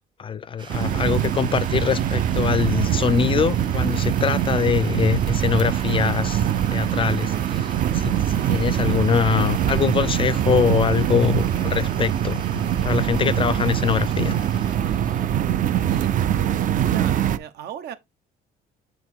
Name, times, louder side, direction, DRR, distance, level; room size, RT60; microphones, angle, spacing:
voice 1, 0.2-6.4 6.7-14.4, left 7 dB, 30° left, 0.4 m, -23 dB
sound 1, 0.6-14.8, right 4 dB, 30° right, 1.1 m, -43 dB
sound 2, 0.7-17.4, right 10 dB, 50° right, 0.5 m, -23 dB
voice 2, 15.8-16.5 16.7-17.9, right 9 dB, 75° right, 1.0 m, -37 dB
8.1 x 2.9 x 4.6 m
cardioid pair, 110°, 17 cm